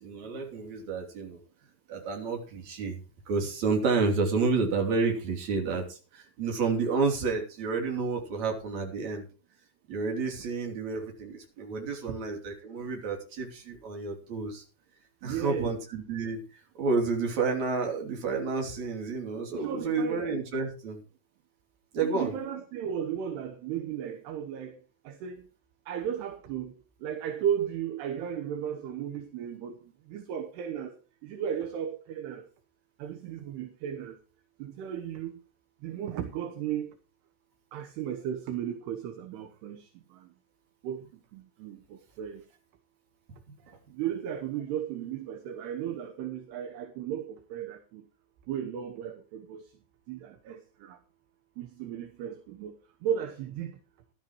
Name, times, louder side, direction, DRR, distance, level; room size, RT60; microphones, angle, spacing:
voice 1, 0.0-1.4 1.9-3.0 3.3-9.3 9.9-14.6 15.2-21.0 21.9-22.3 43.7-43.8, right 4 dB, 40° right, 4.0 m, -30 dB
voice 2, 15.2-15.8 19.5-20.3 22.0-24.8 25.1-25.4 25.9-26.7 27.0-29.8 30.1-30.9 31.2-32.5 33.0-34.2 34.6-35.4 35.8-36.9 37.7-40.3 40.8-41.0 41.3-42.4 43.9-48.0 48.5-49.7 50.1-51.0 51.6-52.8 53.0-53.8, right 9 dB, 70° right, 2.9 m, -35 dB
16.0 x 12.0 x 3.1 m
omnidirectional pair, 5.3 m